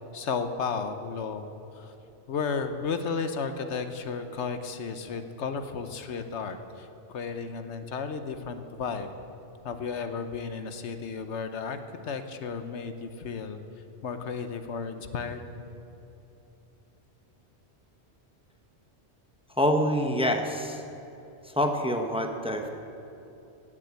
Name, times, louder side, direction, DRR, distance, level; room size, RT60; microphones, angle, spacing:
voice 1, 0.1-1.4 1.7-1.9 2.3-9.1 9.6-11.8 12.0-13.6 14.0-15.5, left 5 dB, 90° left, 8 dB, 1.2 m, -33 dB
voice 2, 19.6-20.8 21.4-22.7, equal, 5° right, 5 dB, 0.8 m, -26 dB
18.0 x 7.4 x 8.2 m, 2.9 s
omnidirectional pair, 1.2 m